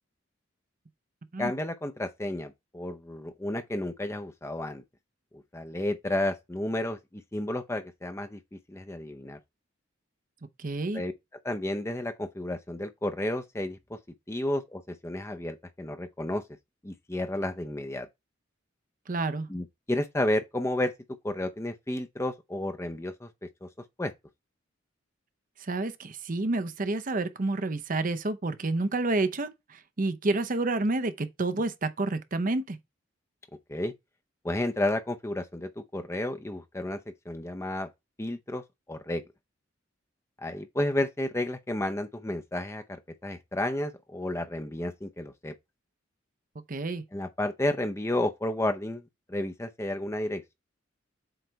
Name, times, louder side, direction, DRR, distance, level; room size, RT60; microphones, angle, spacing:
voice 1, 1.4-4.8 5.5-8.4 8.7-9.4 10.9-11.1 11.4-14.0 14.3-16.4 16.8-18.1 19.5-20.9 21.2-23.3 23.6-23.7 24.0-24.1 33.7-33.9 34.4-37.0 37.3-37.9 38.2-38.6 38.9-39.2 40.4-45.5 47.1-50.5, left 1 dB, 15° left, 0.6 m, -32 dB
voice 2, 10.6-11.0 19.1-19.5 25.6-32.8 46.7-47.0, right 2 dB, 45° right, 0.7 m, -29 dB
7.8 x 3.3 x 4.6 m
head